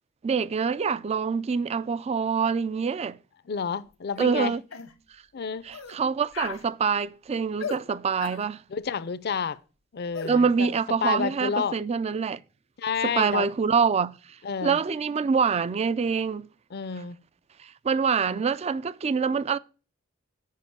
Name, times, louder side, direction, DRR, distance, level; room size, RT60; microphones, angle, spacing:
voice 1, 0.2-3.2 4.2-4.6 5.6-8.6 10.3-12.4 13.0-14.1 14.6-16.5 17.6-19.6, right 5 dB, 30° right, 0.4 m, -25 dB
voice 2, 3.5-4.5 5.3-5.6 8.7-9.6 9.9-10.7 11.0-11.7 12.8-13.5 14.4-14.8 16.7-17.2 18.3-18.4, left 6 dB, 50° left, 0.5 m, -29 dB
sound 1, 4.2-4.3 4.7-4.9 5.7-6.0 6.3-6.6 7.6-7.8 8.2-8.4 10.1-10.3, left 5 dB, 80° left, 1.0 m, -36 dB
7.5 x 5.2 x 7.0 m
head